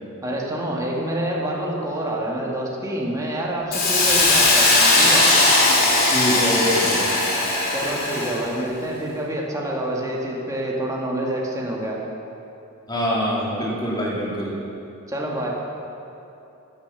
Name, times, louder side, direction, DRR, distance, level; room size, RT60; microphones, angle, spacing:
voice 1, 0.2-5.3 7.7-12.0 15.1-15.5, right 1 dB, 15° right, -3 dB, 2.1 m, -27 dB
Hiss, 3.7-8.4, left 2 dB, 45° left, 3.1 m, -18 dB
voice 2, 6.1-7.1 12.9-14.6, equal, 20° left, -4 dB, 3.0 m, -24 dB
15.5 x 10.5 x 6.9 m, 2.8 s
head